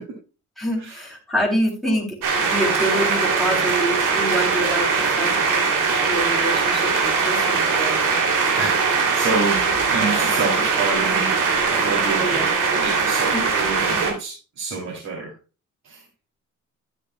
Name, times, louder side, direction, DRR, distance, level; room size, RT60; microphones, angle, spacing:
voice 1, 0.6-2.1 2.4-4.9 5.2-5.3 6.0-7.9 12.2-12.5 13.3-13.4, right 1 dB, ahead, -2 dB, 3.4 m, -25 dB
sound 1, 2.2-14.1, right 5 dB, 85° right, 2.8 m, -21 dB
voice 2, 8.6-15.3 15.8-16.0, right 3 dB, 60° right, -2 dB, 3.0 m, -29 dB
12.0 x 9.3 x 2.2 m, 0.32 s
cardioid pair, 105°, 31 cm